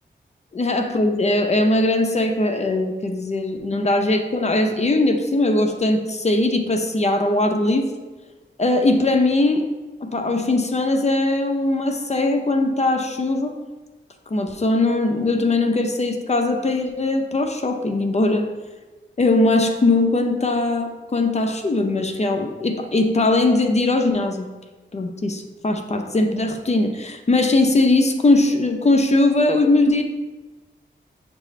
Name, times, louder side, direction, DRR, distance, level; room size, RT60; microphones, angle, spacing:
voice 1, 0.5-7.9 8.6-9.6 10.0-13.5 14.3-18.4 19.2-24.5 24.9-30.0, left 2 dB, 35° left, 5 dB, 0.5 m, -20 dB
6.7 x 2.5 x 3.1 m, 1.2 s
cardioid pair, 60°, 20 cm